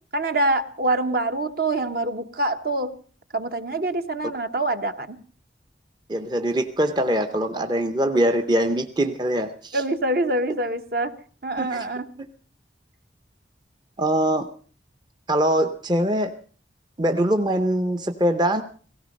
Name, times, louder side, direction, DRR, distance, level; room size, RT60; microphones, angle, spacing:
voice 1, 0.1-2.9 3.3-5.2 9.7-11.1 11.4-12.1, right 2 dB, 55° right, 8 dB, 1.1 m, -25 dB
voice 2, 6.1-9.8 11.6-11.9 14.0-14.5 15.3-16.3 17.0-18.6, right 1 dB, 25° right, 7 dB, 0.7 m, -23 dB
17.5 x 16.0 x 5.3 m, 0.43 s
head